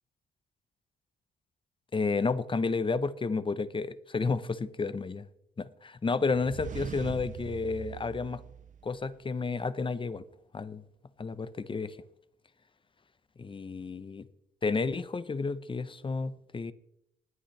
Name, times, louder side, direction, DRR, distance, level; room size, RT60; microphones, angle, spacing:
voice 1, 1.9-5.3 5.6-8.4 8.8-10.2 10.5-10.8 11.2-12.0 13.4-14.3 14.6-16.7, left 4 dB, 25° left, 0.7 m, -31 dB
sound 1, 6.3-9.2, right 8 dB, 40° right, 0.5 m, -42 dB
20.0 x 8.7 x 3.2 m
cardioid pair, 90°, 20 cm